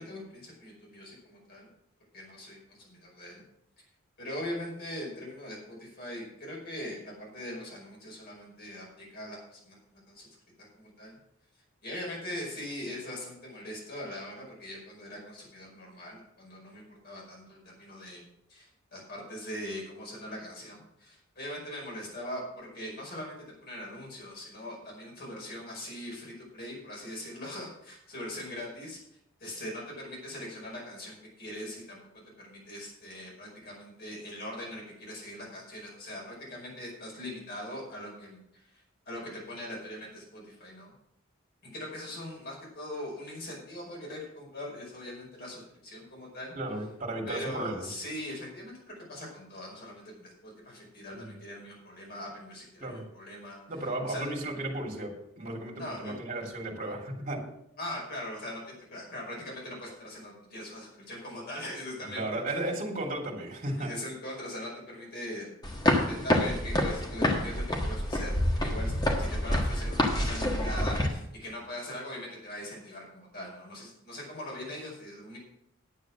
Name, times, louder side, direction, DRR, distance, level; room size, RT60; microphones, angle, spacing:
voice 1, 0.0-1.7 2.1-3.4 4.2-10.3 10.7-11.2 11.8-23.4 23.6-29.0 29.4-40.9 41.6-46.5 47.3-53.6 54.0-54.3 55.8-56.2 57.8-62.2 63.6-65.5 66.1-68.9 69.2-75.4, left 1 dB, 45° left, -3 dB, 5.3 m, -41 dB
voice 2, 46.5-47.9 51.1-51.3 52.8-53.0 53.7-55.1 55.4-57.4 62.1-64.0, right 1 dB, 35° right, -1 dB, 2.7 m, -34 dB
sound 1, 65.6-71.1, left 1 dB, 20° left, 1.5 m, -27 dB
10.0 x 8.3 x 6.2 m, 0.79 s
head